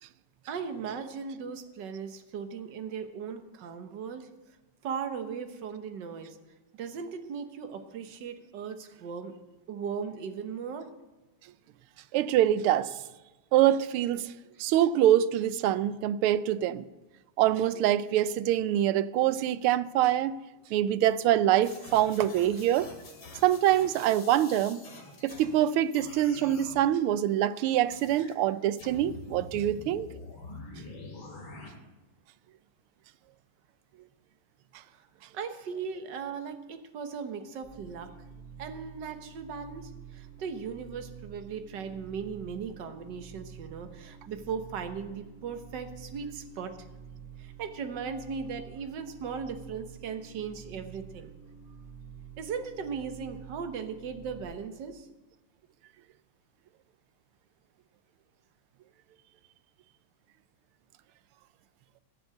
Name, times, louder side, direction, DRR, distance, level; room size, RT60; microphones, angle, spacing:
voice 1, 0.5-4.3 4.8-6.4 6.8-9.3 9.7-10.9 14.6-14.7 34.9-35.0 35.3-38.1 38.6-46.7 47.4-51.3 52.4-55.1, right 6 dB, 60° right, 1.7 m, -38 dB
voice 2, 12.1-12.9 13.5-14.3 14.6-16.9 17.4-20.3 20.7-22.9 23.4-24.8 25.2-30.1, right 12 dB, 85° right, 1.5 m, -25 dB
sound 1, 21.6-25.6 25.9-26.8 27.9-28.3 28.8-31.7, left 3 dB, 65° left, 3.2 m, -46 dB
sound 2, 37.6-54.4, right 7 dB, 30° left, 2.6 m, -48 dB
16.0 x 7.1 x 7.8 m
omnidirectional pair, 2.3 m